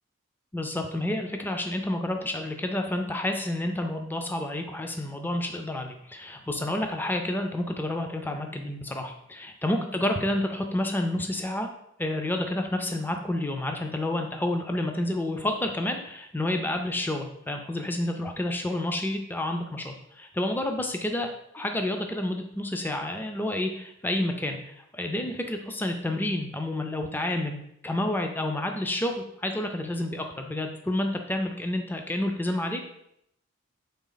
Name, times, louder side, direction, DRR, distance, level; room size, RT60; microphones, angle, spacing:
voice 1, 0.5-11.7 12.0-21.3 21.5-32.9, left 1 dB, 10° left, 4 dB, 0.3 m, -29 dB
4.1 x 3.2 x 3.9 m, 0.76 s
head